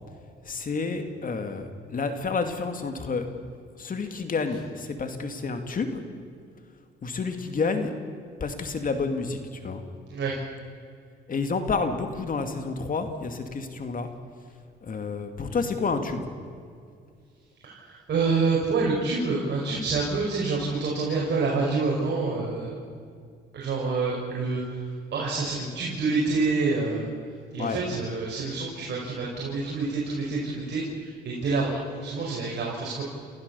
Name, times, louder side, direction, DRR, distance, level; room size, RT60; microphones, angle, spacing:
voice 1, 0.4-3.3 3.8-6.0 7.0-7.9 8.4-9.8 11.3-14.1 14.8-16.3 27.6-27.8, left 4 dB, 45° left, 7 dB, 2.4 m, -29 dB
voice 2, 17.6-22.7 23.5-24.8 25.1-27.0 27.5-33.0, right 4 dB, 60° right, -3 dB, 5.1 m, -27 dB
30.0 x 15.0 x 7.0 m, 2.2 s
cardioid pair, 90°, 20 cm